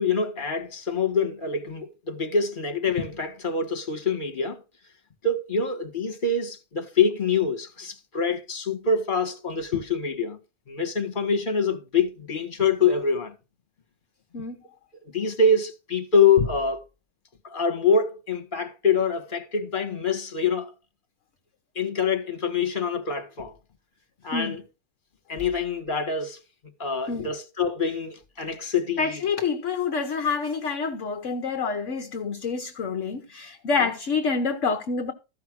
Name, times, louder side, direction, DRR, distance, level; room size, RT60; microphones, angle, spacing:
voice 1, 0.0-4.6 5.2-10.4 10.7-13.3 15.1-16.8 17.4-20.7 21.8-23.5 24.2-24.6 25.3-26.4 26.8-29.2 33.8-33.9, left 4 dB, 30° left, 1.8 m, -25 dB
voice 2, 29.0-35.1, left 5 dB, 50° left, 1.2 m, -27 dB
14.0 x 5.8 x 6.2 m
omnidirectional pair, 1.8 m